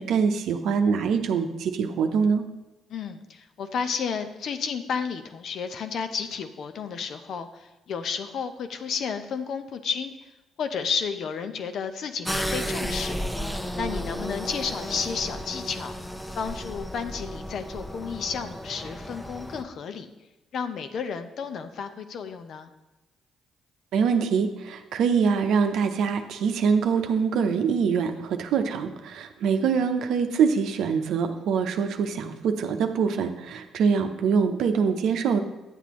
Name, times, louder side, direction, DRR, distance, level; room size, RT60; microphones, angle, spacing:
voice 1, 0.0-2.4 23.9-35.4, right 6 dB, 70° right, 7 dB, 0.7 m, -24 dB
voice 2, 2.9-10.3 10.6-13.2 13.8-15.9 16.4-20.1 20.5-22.7, left 6 dB, 60° left, 9 dB, 0.7 m, -32 dB
sound 1, 12.2-19.6, equal, 5° left, 0.8 m, -33 dB
9.8 x 8.2 x 3.1 m, 1.0 s
hypercardioid pair, 50°, 0 cm